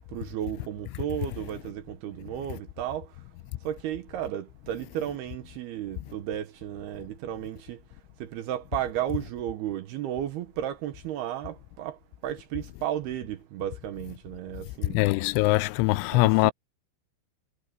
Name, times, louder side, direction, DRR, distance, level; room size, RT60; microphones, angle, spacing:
voice 1, 0.1-3.1 3.6-7.8 8.2-12.0 12.2-15.0 16.1-16.5, right 11 dB, 70° right, 2.7 m, -33 dB
voice 2, 14.9-16.5, left 20 dB, 90° left, 3.0 m, -22 dB
omnidirectional pair, 5.4 m